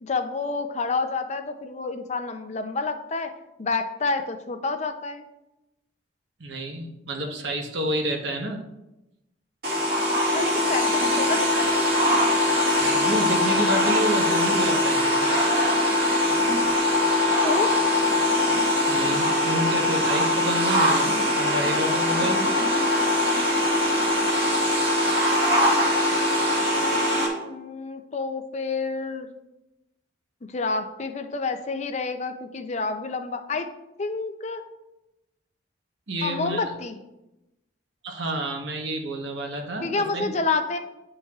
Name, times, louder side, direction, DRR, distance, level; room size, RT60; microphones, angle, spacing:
voice 1, 0.0-3.3 3.6-5.3 10.3-12.2 17.4-17.9 25.5-25.9 27.4-29.3 30.5-33.7 34.0-34.6 36.2-36.9 39.8-40.8, left 3 dB, 35° left, 7 dB, 0.5 m, -29 dB
voice 2, 6.4-8.7 12.8-15.3 18.9-22.5 36.1-36.8 38.0-40.3, right 1 dB, 70° right, 2 dB, 1.0 m, -29 dB
sound 1, 9.6-27.3, left 1 dB, 50° right, 2.0 m, -22 dB
10.0 x 5.4 x 2.4 m, 0.94 s
head